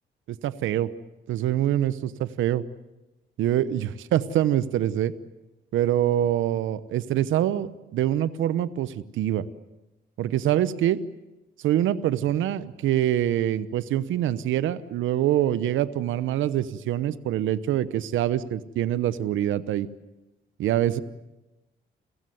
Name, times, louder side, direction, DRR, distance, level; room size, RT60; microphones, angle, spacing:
voice 1, 0.3-0.9 1.3-2.6 3.4-5.1 5.7-9.5 10.2-11.0 11.6-19.9 20.6-21.0, right 12 dB, 80° right, 15 dB, 0.9 m, -25 dB
29.5 x 15.5 x 9.5 m, 0.98 s
cardioid pair, 90°, 20 cm